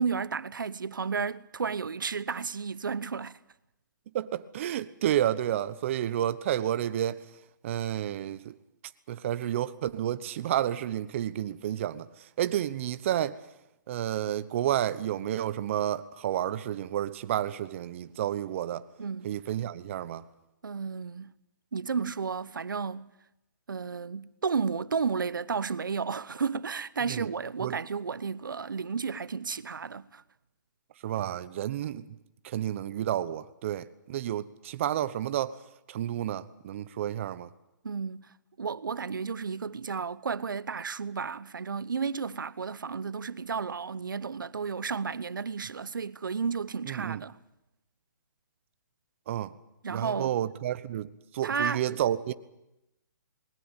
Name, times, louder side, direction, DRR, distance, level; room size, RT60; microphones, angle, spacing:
voice 1, 0.0-3.4 19.0-19.3 20.6-21.3 21.7-23.1 23.7-30.2 37.8-47.4 49.8-50.4 51.4-52.0, right 5 dB, 90° right, 0.9 m, -32 dB
voice 2, 4.1-7.2 7.6-8.4 9.1-12.1 12.4-13.4 13.9-18.8 19.2-20.2 27.1-27.3 27.6-27.8 31.0-32.1 32.4-35.6 35.9-37.5 46.9-47.2 49.3-49.5 49.9-51.1 51.3-52.3, right 11 dB, 40° right, 1.0 m, -30 dB
20.5 x 19.0 x 9.0 m
hypercardioid pair, 155°, 11 cm